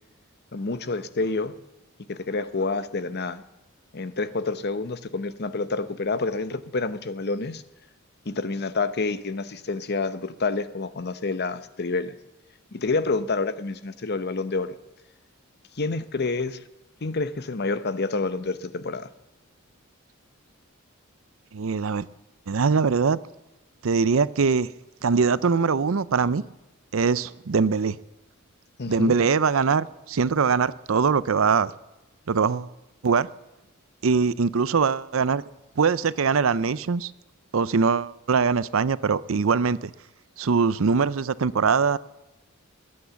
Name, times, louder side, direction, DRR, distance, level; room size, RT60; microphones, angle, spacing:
voice 1, 0.5-1.5 2.1-3.4 3.9-7.6 8.3-12.1 12.7-14.8 15.8-16.6 17.0-19.1 28.8-29.1, left 3 dB, 50° left, 13 dB, 0.8 m, -28 dB
voice 2, 21.5-22.1 22.5-23.2 23.8-24.7 25.0-26.4 26.9-28.0 28.9-31.7 32.3-32.7 33.0-33.3 34.0-35.4 35.8-37.1 37.5-39.9 40.4-42.0, right 5 dB, 70° right, 18 dB, 0.5 m, -22 dB
21.0 x 8.7 x 7.0 m, 1.0 s
head